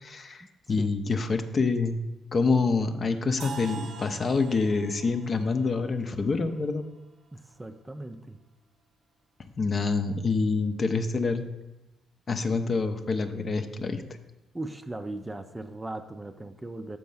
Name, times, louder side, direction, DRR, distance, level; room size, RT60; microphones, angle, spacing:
voice 1, 0.0-2.0 2.3-6.9 9.6-11.5 12.3-14.0, left 4 dB, 40° left, 8 dB, 0.6 m, -27 dB
sound 1, 3.4-7.3, right 5 dB, 65° right, 0.7 m, -44 dB
voice 2, 7.3-8.4 14.5-17.0, right 2 dB, 15° right, 8 dB, 0.4 m, -38 dB
6.4 x 4.6 x 5.4 m, 0.98 s
cardioid pair, 90°, 0 cm